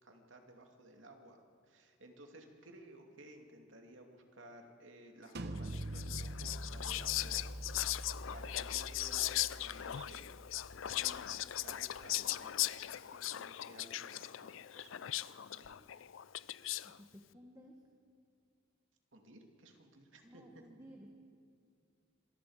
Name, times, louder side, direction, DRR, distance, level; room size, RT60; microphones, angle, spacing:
voice 1, 0.0-7.5 8.3-10.3 10.8-11.3 11.6-15.9 19.1-20.4, right 1 dB, 75° right, 3 dB, 2.7 m, -56 dB
sound 1, 5.4-11.0, right 1 dB, 55° right, 1.1 m, -45 dB
Whispering, 5.6-17.0, left 14 dB, 85° left, 0.5 m, -39 dB
voice 2, 16.8-17.7 20.2-21.1, equal, 15° right, 1 dB, 1.6 m, -56 dB
26.5 x 21.5 x 5.1 m, 2.3 s
head